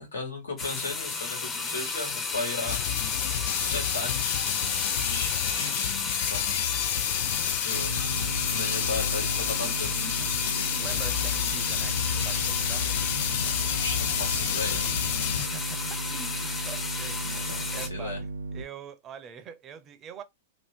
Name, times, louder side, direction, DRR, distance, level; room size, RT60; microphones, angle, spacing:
voice 1, 0.1-2.8 3.5-4.4 5.0-6.7 7.5-8.0 8.5-9.9 13.8-14.9 17.3-18.2, left 3 dB, 85° left, 1.4 m, -36 dB
sound 1, 0.6-17.9, left 4 dB, 25° left, 0.6 m, -33 dB
sound 2, 2.7-15.5, left 11 dB, 65° left, 0.3 m, -30 dB
sound 3, 7.7-18.6, right 2 dB, 85° right, 0.3 m, -36 dB
voice 2, 10.8-12.9 15.2-15.8 16.1-20.2, right 7 dB, 30° right, 0.5 m, -44 dB
2.7 x 2.3 x 3.4 m
hypercardioid pair, 120°, 0 cm